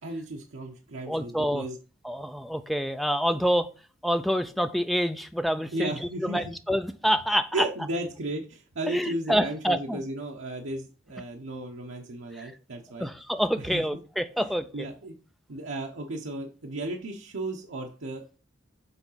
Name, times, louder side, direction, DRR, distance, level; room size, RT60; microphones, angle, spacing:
voice 1, 0.0-1.8 5.7-6.5 7.5-13.1 13.6-13.8 14.4-14.5 14.7-15.1 15.5-18.4, right 1 dB, 75° right, 1 dB, 0.9 m, -34 dB
voice 2, 1.1-1.7 2.0-3.7 4.0-5.9 6.2-7.7 8.9-10.0 12.4-12.5 13.0-14.9, equal, ahead, 9 dB, 0.4 m, -27 dB
7.1 x 3.9 x 5.6 m, 0.37 s
head